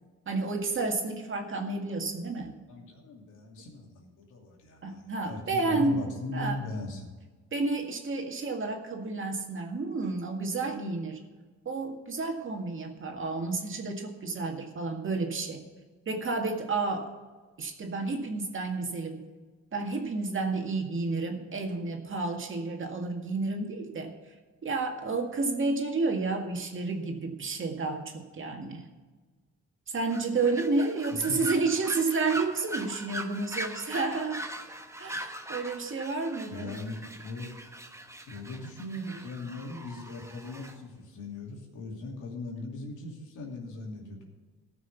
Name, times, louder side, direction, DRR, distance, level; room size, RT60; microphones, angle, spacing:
voice 1, 0.3-2.5 4.8-6.0 6.3-6.6 7.5-11.2 11.7-15.7 16.1-17.1 17.6-19.2 19.7-24.1 24.6-28.9 29.9-34.4 35.0-36.7, right 3 dB, 40° right, 3 dB, 2.0 m, -31 dB
voice 2, 2.7-7.1 31.1-31.6 36.5-37.5 38.3-44.3, left 2 dB, 85° left, 0 dB, 2.7 m, -39 dB
sound 1, 30.1-40.8, right 1 dB, 10° right, 1.1 m, -41 dB
14.0 x 6.1 x 7.2 m, 1.4 s
cardioid pair, 90°, 30 cm